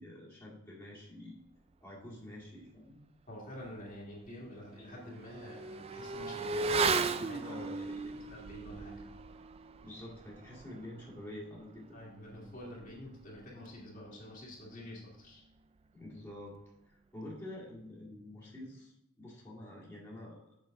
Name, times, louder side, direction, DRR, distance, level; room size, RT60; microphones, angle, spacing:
voice 1, 0.0-1.4 1.8-3.0 7.4-8.2 9.8-12.0 15.9-16.6 16.9-20.4, left 1 dB, 10° left, -7 dB, 2.1 m, -47 dB
voice 2, 3.3-7.6 8.2-9.2 11.9-15.4, left 1 dB, 40° left, -4 dB, 1.9 m, -48 dB
Motorcycle / Accelerating revving vroom, 3.6-3.7 4.1-14.1 14.4-14.5, right 4 dB, 30° right, 0.3 m, -38 dB
7.3 x 6.2 x 3.7 m, 0.86 s
head